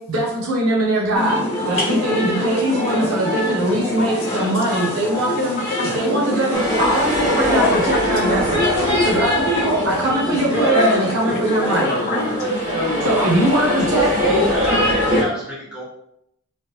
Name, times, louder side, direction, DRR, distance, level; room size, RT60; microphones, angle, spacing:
voice 1, 0.1-5.6 5.9-8.6 9.0-11.9 13.0-14.1, right 1 dB, 70° right, -4 dB, 0.7 m, -21 dB
sound 1, 1.1-15.2, left 1 dB, 30° left, 1.1 m, -23 dB
voice 2, 2.1-3.1 3.7-4.8 5.3-5.9 6.8-6.9 7.6-9.1 10.8-12.5, left 3 dB, 45° left, 2 dB, 0.5 m, -32 dB
sound 2, 6.5-11.1 11.5-15.2, left 1 dB, 35° right, 1.3 m, -25 dB
voice 3, 13.2-15.8, equal, 5° right, -8 dB, 1.2 m, -30 dB
3.1 x 2.9 x 2.8 m, 0.76 s
head